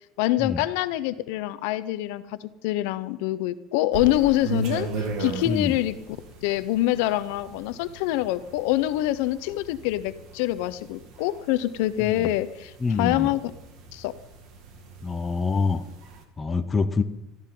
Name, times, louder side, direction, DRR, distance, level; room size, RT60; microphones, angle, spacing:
voice 1, 0.2-2.4 2.6-6.0 6.4-12.7 13.0-13.4 13.9-14.1, left 15 dB, 70° left, 14 dB, 0.7 m, -25 dB
sound 1, 3.9-16.2, right 4 dB, 45° right, 1.9 m, -38 dB
voice 2, 5.4-5.8 12.0-12.3 12.8-13.3 15.0-15.8 16.4-17.0, left 4 dB, 10° left, 7 dB, 0.7 m, -26 dB
23.0 x 14.0 x 3.8 m, 0.89 s
cardioid pair, 175°, 0 cm